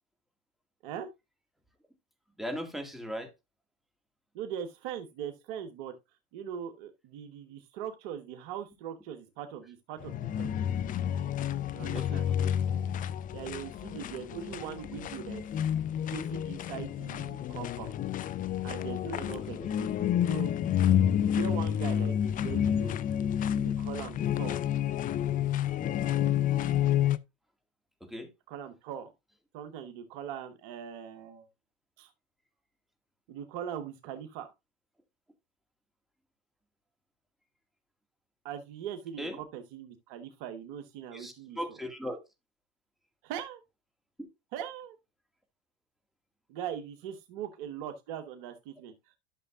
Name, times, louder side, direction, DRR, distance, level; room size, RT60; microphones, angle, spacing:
voice 1, 2.4-3.3 11.9-12.5 19.6-19.7 28.0-28.3 39.2-39.4 41.1-42.2, equal, ahead, 2.0 m, -38 dB
voice 2, 4.3-5.9 6.3-10.6 11.7-12.3 13.3-15.4 16.1-17.9 18.6-20.5 20.9-23.0 23.5-24.6 28.5-29.1 29.5-31.5 32.0-32.1 33.3-34.5 38.4-41.6 43.2-43.6 44.5-45.0 46.5-49.2, right 9 dB, 60° right, 1.3 m, -41 dB
sound 1, 10.0-27.2, left 10 dB, 25° left, 0.5 m, -29 dB
12.0 x 6.6 x 2.4 m
hypercardioid pair, 110°, 32 cm